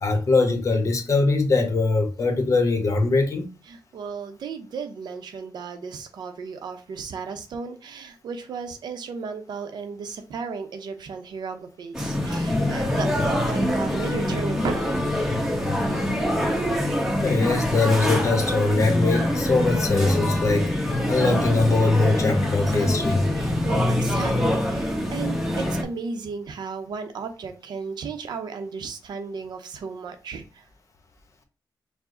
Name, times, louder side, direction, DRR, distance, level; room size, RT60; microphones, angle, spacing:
voice 1, 0.0-3.5 17.2-23.3, left 3 dB, 45° left, 1.0 m, -22 dB
voice 2, 3.7-15.0 23.3-30.6, right 5 dB, 75° right, 0.6 m, -35 dB
sound 1, 11.9-25.8, left 1 dB, 5° right, 0.9 m, -24 dB
4.7 x 2.1 x 3.7 m
cardioid pair, 90°, 7 cm